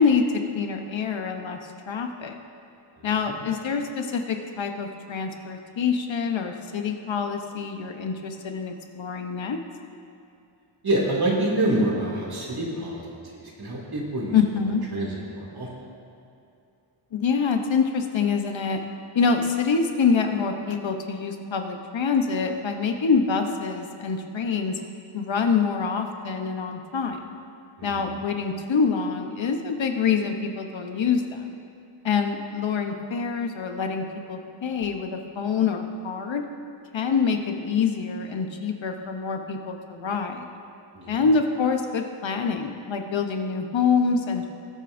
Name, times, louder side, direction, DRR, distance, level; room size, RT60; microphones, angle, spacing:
voice 1, 0.0-1.6 1.9-2.3 3.0-9.6 14.3-14.9 17.1-18.8 19.1-24.8 25.1-27.3 27.8-31.4 32.0-36.4 36.9-40.5 41.1-44.5, left 5 dB, 65° left, 5 dB, 0.9 m, -25 dB
voice 2, 3.0-3.4 10.8-13.0 13.3-14.4 14.9-15.7 27.8-27.9 40.9-41.1, right 1 dB, 50° right, -4 dB, 2.6 m, -26 dB
20.5 x 8.4 x 2.6 m, 2.6 s
wide cardioid pair, 110°, 49 cm